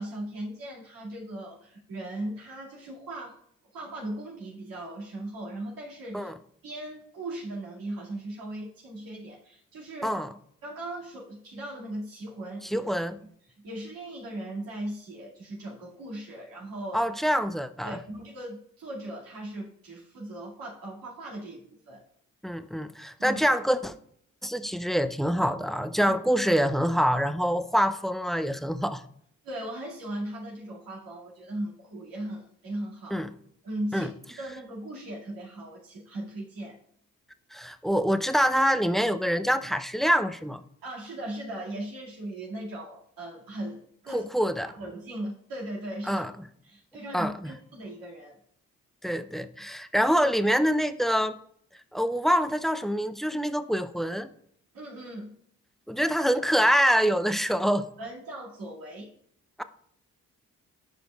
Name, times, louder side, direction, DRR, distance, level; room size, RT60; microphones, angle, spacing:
voice 1, 0.0-3.4 3.7-6.3 6.6-10.2 10.6-12.9 13.6-17.1 17.8-22.0 23.2-23.4 26.0-26.2 26.4-26.6 29.4-33.3 33.6-34.1 34.4-36.8 40.8-44.3 44.6-46.2 46.6-48.4 54.7-55.3 57.2-57.4 57.7-59.1, right 1 dB, 80° right, -5 dB, 2.2 m, -38 dB
voice 2, 10.0-10.3 12.6-13.2 16.9-18.0 22.4-23.9 24.4-29.0 33.1-33.3 33.9-34.1 37.5-40.6 44.1-44.7 46.0-46.3 47.1-47.5 49.0-51.4 51.9-54.3 55.9-57.8 59.6-59.7, equal, ahead, 12 dB, 0.5 m, -25 dB
10.0 x 5.1 x 2.4 m, 0.65 s
supercardioid pair, 50°, 34 cm